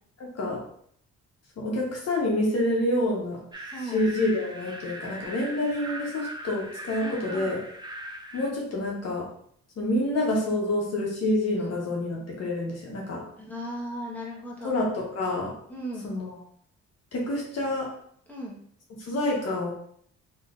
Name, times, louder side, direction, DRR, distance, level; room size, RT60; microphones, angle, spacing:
voice 1, 0.2-0.6 1.6-3.4 3.8-7.6 8.3-9.2 9.8-13.2 14.6-15.5 16.0-16.4 17.1-17.9 19.0-19.7, left 1 dB, 55° left, -2 dB, 1.0 m, -27 dB
sound 1, 3.5-8.5, right 1 dB, 15° right, 0.5 m, -40 dB
voice 2, 3.7-4.0 7.0-7.5 11.6-11.7 13.4-14.7 15.7-16.1 18.3-18.6, equal, 5° left, -5 dB, 1.1 m, -37 dB
3.3 x 3.0 x 2.4 m, 0.64 s
cardioid pair, 90°, 30 cm